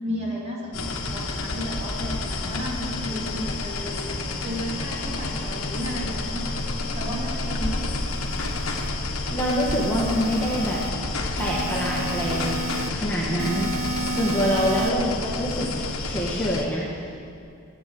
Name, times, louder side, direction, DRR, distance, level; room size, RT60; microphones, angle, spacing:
voice 1, 0.0-6.6 6.9-7.8, equal, 30° right, -5 dB, 2.9 m, -33 dB
sound 1, 0.7-16.6, left 2 dB, 70° left, 1.3 m, -30 dB
sound 2, 7.8-8.9 9.4-10.9 11.4-12.9 13.4-14.9, right 2 dB, 60° right, 0.6 m, -32 dB
voice 2, 9.3-10.8 11.4-12.6 12.9-13.8 14.1-15.7 16.0-17.1, equal, 10° left, -6 dB, 1.8 m, -25 dB
14.0 x 8.8 x 7.8 m, 2.4 s
head